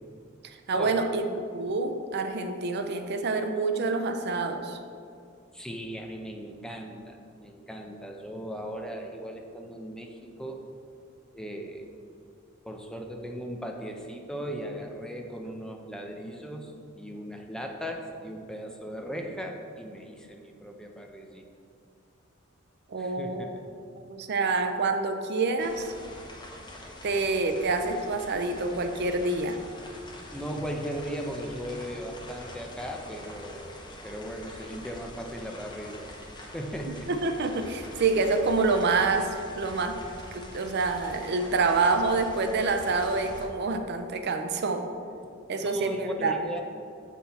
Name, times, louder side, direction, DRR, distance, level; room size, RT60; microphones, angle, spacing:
voice 1, 0.4-1.2 1.5-4.8 22.9-23.6 23.9-25.9 27.0-29.6 37.1-40.0 40.3-44.9 45.5-46.4, right 3 dB, 55° right, 7 dB, 0.5 m, -27 dB
voice 2, 5.5-10.7 11.3-11.9 12.6-21.5 23.0-23.6 30.3-33.8 34.0-37.1 45.6-46.6, equal, 5° left, 2 dB, 0.6 m, -37 dB
sound 1, 25.6-43.4, left 1 dB, 25° left, 0.9 m, -45 dB
7.1 x 5.9 x 4.1 m, 2.4 s
head